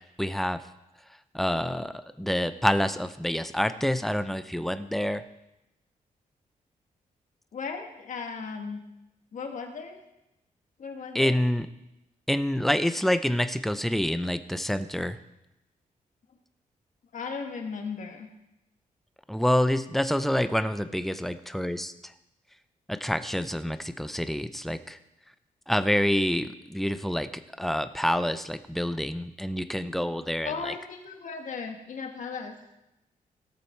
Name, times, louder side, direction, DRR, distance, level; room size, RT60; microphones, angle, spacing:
voice 1, 0.2-0.6 1.3-5.2 11.1-11.7 12.3-15.2 19.3-21.9 22.9-25.0 25.7-27.3 27.6-30.7, equal, ahead, 11 dB, 0.6 m, -27 dB
voice 2, 7.5-8.8 9.3-10.0 10.8-11.3 17.1-18.3 30.5-32.6, left 5 dB, 65° left, 4 dB, 1.8 m, -36 dB
17.5 x 6.9 x 4.6 m, 0.90 s
cardioid pair, 100°, 14 cm